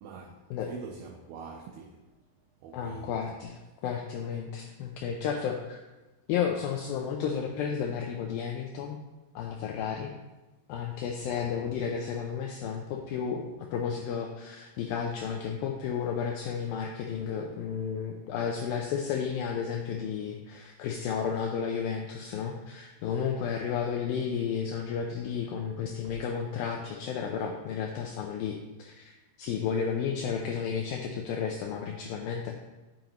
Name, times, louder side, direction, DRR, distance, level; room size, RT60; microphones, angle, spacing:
voice 1, 0.0-0.3 0.7-2.0 2.6-3.1, right 5 dB, 75° right, 1 dB, 2.4 m, -43 dB
voice 2, 2.7-5.8 6.3-9.0 9.4-10.1 10.7-32.7, left 7 dB, 80° left, 1 dB, 2.2 m, -32 dB
9.3 x 8.9 x 3.0 m, 1.1 s
omnidirectional pair, 4.8 m